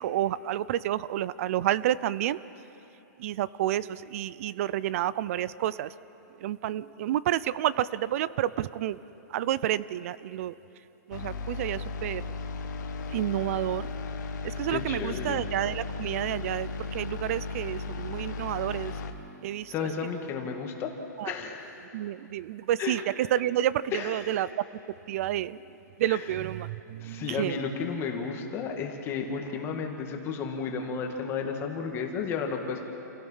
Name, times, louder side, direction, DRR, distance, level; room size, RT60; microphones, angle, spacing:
voice 1, 0.0-2.4 3.2-5.9 6.4-9.0 9.3-10.5 11.1-12.2 13.1-13.9 14.4-18.9 19.4-19.9 21.2-21.4 21.9-24.5 25.1-25.6 26.0-27.6, right 12 dB, 45° right, 19 dB, 0.5 m, -29 dB
sound 1, 11.1-19.1, left 3 dB, 70° left, 1.7 m, -35 dB
voice 2, 14.7-15.4 19.7-20.9 21.2-21.7 22.8-23.0 23.9-24.4 26.1-26.2 27.0-32.9, left 6 dB, 25° left, 3 dB, 1.8 m, -33 dB
28.0 x 17.0 x 5.7 m, 3.0 s
hypercardioid pair, 150°, 10 cm